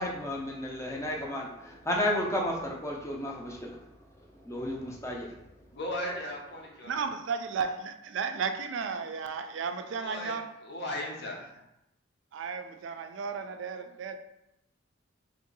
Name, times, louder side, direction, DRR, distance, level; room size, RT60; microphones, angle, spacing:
voice 1, 0.0-3.8 4.4-5.4, left 1 dB, 15° left, -1 dB, 0.5 m, -32 dB
voice 2, 5.7-6.9 9.9-11.6, left 1 dB, 55° left, 0 dB, 0.7 m, -37 dB
voice 3, 6.9-10.4 12.3-14.2, right 5 dB, 60° right, 7 dB, 0.3 m, -34 dB
2.9 x 2.6 x 3.9 m, 0.84 s
head